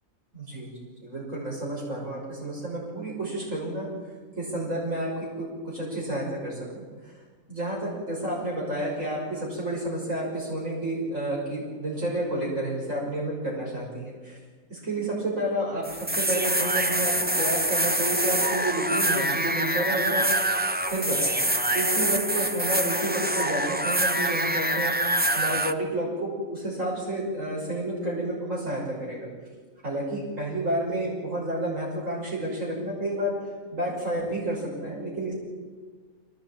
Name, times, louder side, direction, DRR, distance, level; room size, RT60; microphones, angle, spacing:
voice 1, 0.3-3.9 4.4-5.1 5.4-6.8 7.5-14.4 14.7-20.2 20.9-21.3 21.7-24.9 25.3-29.3 29.8-33.3 33.7-35.3, right 1 dB, 75° right, -4 dB, 6.5 m, -30 dB
sound 1, 15.8-25.7, right 1 dB, 10° right, 0.6 m, -25 dB
24.0 x 18.5 x 8.9 m, 1.5 s
omnidirectional pair, 1.4 m